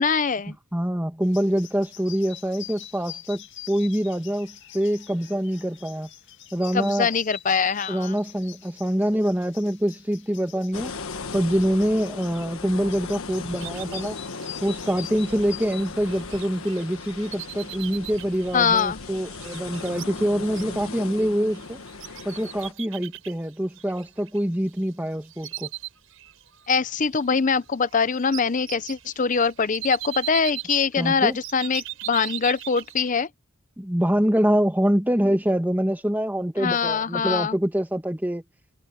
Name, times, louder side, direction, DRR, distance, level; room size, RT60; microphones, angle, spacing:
voice 1, 0.0-0.6 6.7-8.2 18.5-19.0 26.7-33.3 36.6-37.6, left 5 dB, 40° left, 0.6 m, -23 dB
voice 2, 0.7-6.1 6.5-7.1 7.9-10.9 11.3-14.2 14.6-21.8 22.2-25.7 31.0-31.4 33.8-38.4, equal, 10° right, 1.6 m, -25 dB
sound 1, 1.2-16.8, left 12 dB, 60° left, 2.3 m, -44 dB
sound 2, 10.7-22.7, left 4 dB, 80° left, 1.4 m, -37 dB
sound 3, 13.6-24.9 25.2-26.7 27.0-33.2, right 15 dB, 70° right, 6.6 m, -40 dB
head